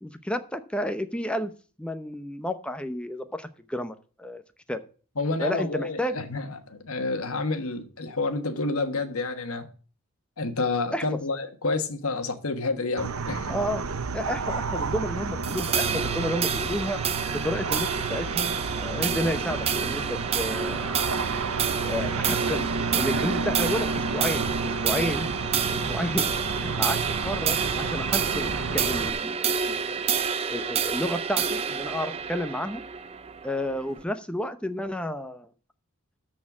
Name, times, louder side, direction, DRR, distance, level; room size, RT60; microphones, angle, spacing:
voice 1, 0.0-1.5 1.8-4.4 4.7-4.8 5.4-6.2 10.9-11.0 13.4-13.8 14.1-17.0 17.4-21.0 21.8-25.3 25.7-29.8 30.5-32.8 33.4-35.5, left 1 dB, 5° left, 0.7 m, -31 dB
voice 2, 5.2-9.7 10.4-13.5, left 3 dB, 75° left, 1.4 m, -29 dB
sound 1, 13.0-29.1, right 4 dB, 75° right, 0.8 m, -31 dB
sound 2, 15.4-34.0, right 7 dB, 25° right, 0.5 m, -29 dB
13.0 x 4.4 x 7.2 m
head